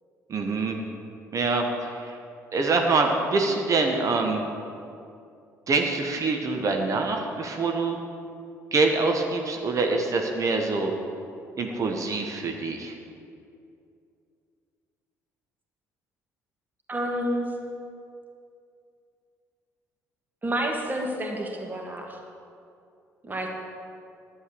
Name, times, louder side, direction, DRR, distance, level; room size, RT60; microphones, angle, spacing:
voice 1, 0.3-0.8 1.3-2.1 2.5-4.4 5.7-8.0 8.7-10.9 11.6-12.9, right 3 dB, 40° right, 3 dB, 1.2 m, -25 dB
voice 2, 16.9-17.5 20.4-22.2 23.2-23.5, right 1 dB, 20° right, 2 dB, 2.1 m, -29 dB
11.0 x 7.8 x 6.8 m, 2.5 s
figure-of-eight pair, 50°, 9 cm